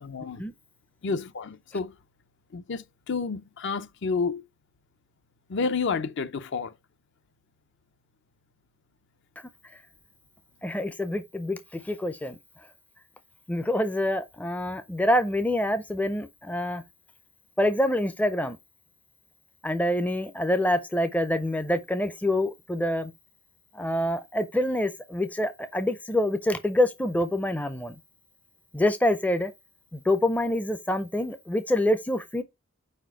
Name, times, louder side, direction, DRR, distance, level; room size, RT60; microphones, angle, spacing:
voice 1, 0.0-0.4 1.0-2.0 2.5-4.4 5.5-6.7, left 4 dB, 55° left, 0.5 m, -30 dB
voice 2, 10.6-12.4 13.5-16.8 17.6-18.6 19.6-23.1 23.7-28.0 28.7-29.5 29.9-32.4, left 1 dB, 5° left, 0.4 m, -26 dB
4.8 x 4.3 x 4.5 m
head